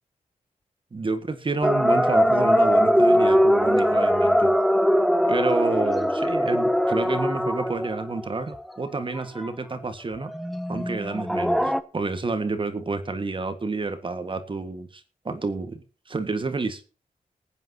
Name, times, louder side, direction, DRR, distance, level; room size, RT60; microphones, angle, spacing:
voice 1, 0.9-4.5 5.3-10.3 10.7-16.8, right 3 dB, 35° right, 8 dB, 1.8 m, -29 dB
sound 1, 1.6-8.6 9.2-9.3 9.4-9.5 10.3-11.8, equal, ahead, 0.8 m, -21 dB
20.5 x 9.1 x 2.9 m, 0.35 s
wide cardioid pair, 130°, 14 cm